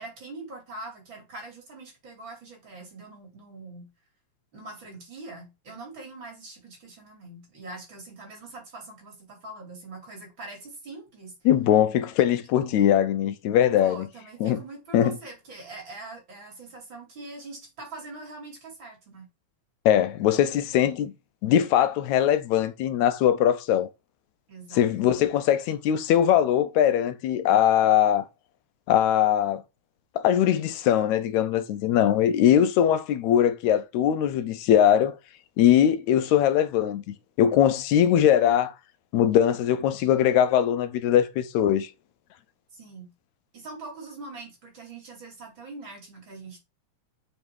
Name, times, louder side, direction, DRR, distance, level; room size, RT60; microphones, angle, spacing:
voice 1, 0.0-3.9 4.5-11.4 13.8-19.3 24.5-25.1 42.7-43.1 43.5-46.6, right 2 dB, 40° right, 3.5 m, -43 dB
voice 2, 11.5-14.1 14.4-14.6 14.9-15.2 19.9-21.1 21.4-23.9 24.7-28.3 28.9-29.6 30.2-35.2 35.6-38.8 39.1-41.9, left 10 dB, 85° left, 2.0 m, -21 dB
6.0 x 5.4 x 4.6 m
omnidirectional pair, 3.3 m